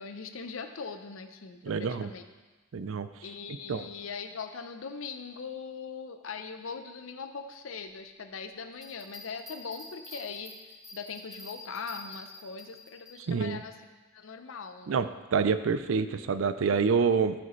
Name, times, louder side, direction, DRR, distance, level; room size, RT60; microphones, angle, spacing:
voice 1, 0.0-2.2 3.2-13.8 14.1-15.1, left 5 dB, 75° left, 7 dB, 0.6 m, -41 dB
voice 2, 1.6-2.1 2.7-3.1 3.7-3.9 13.3-13.6 14.9-17.3, right 5 dB, 75° right, 12 dB, 0.4 m, -27 dB
Bell, 8.7-13.1 13.6-13.7, left 1 dB, ahead, 1.7 m, -47 dB
13.0 x 5.0 x 3.1 m, 1.2 s
head